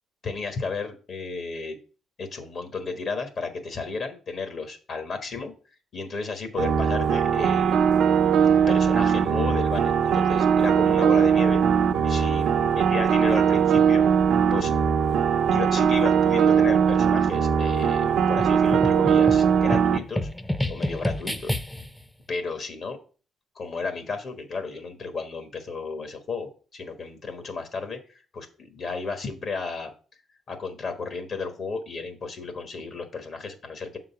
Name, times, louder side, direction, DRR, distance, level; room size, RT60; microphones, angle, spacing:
voice 1, 0.2-1.8 2.2-5.5 5.9-7.8 8.4-11.6 12.0-14.1 14.5-14.7 15.5-20.3 20.7-21.6 22.3-23.0 23.5-29.9 30.5-34.0, left 4 dB, 55° left, 7 dB, 1.3 m, -33 dB
sound 1, 6.6-20.0, right 7 dB, 75° right, 0.6 m, -20 dB
sound 2, 18.4-22.0, left 1 dB, 10° left, 0.6 m, -30 dB
6.7 x 3.9 x 5.6 m, 0.37 s
cardioid pair, 90°, 0 cm